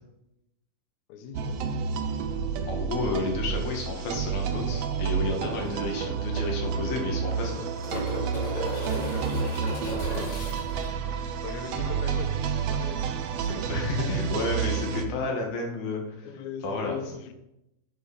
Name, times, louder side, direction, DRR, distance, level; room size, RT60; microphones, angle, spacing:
voice 1, 1.1-1.6 9.9-10.4 11.4-13.1 13.4-13.8 16.2-17.4, left 6 dB, 65° left, 6 dB, 2.1 m, -40 dB
sound 1, 1.3-15.1, right 6 dB, 85° right, 1.4 m, -30 dB
voice 2, 2.7-7.6 13.7-16.3 16.6-17.0, left 3 dB, 90° left, 1 dB, 4.1 m, -31 dB
sound 2, 5.7-5.8 6.0-6.1 7.2-10.9 13.4-13.5, left 1 dB, 40° left, 4.9 m, -35 dB
9.9 x 7.1 x 5.7 m, 0.85 s
omnidirectional pair, 4.1 m